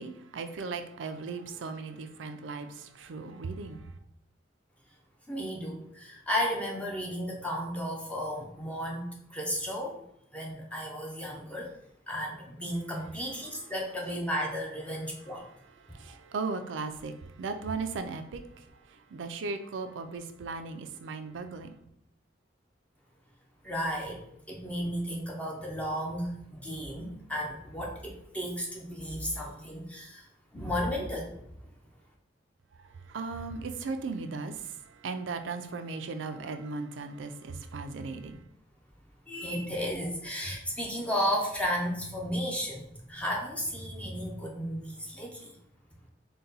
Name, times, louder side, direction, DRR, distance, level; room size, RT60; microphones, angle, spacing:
voice 1, 0.0-3.9 13.5-13.7 15.9-21.7 33.1-38.4, right 4 dB, 85° right, 0.4 m, -37 dB
voice 2, 5.3-10.0 10.3-11.7 12.1-15.4 23.6-30.2 30.5-31.4 39.3-45.6, equal, 5° left, 0.6 m, -34 dB
4.0 x 2.2 x 3.9 m
head